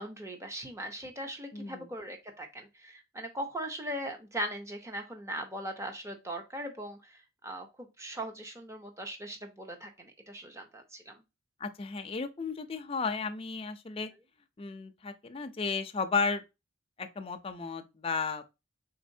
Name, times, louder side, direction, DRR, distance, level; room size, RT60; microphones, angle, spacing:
voice 1, 0.0-11.2, right 1 dB, 15° right, 0.6 m, -40 dB
voice 2, 1.5-1.9 11.6-14.1 14.6-16.4 17.0-18.4, left 4 dB, 25° left, 0.4 m, -34 dB
4.2 x 3.8 x 2.7 m
head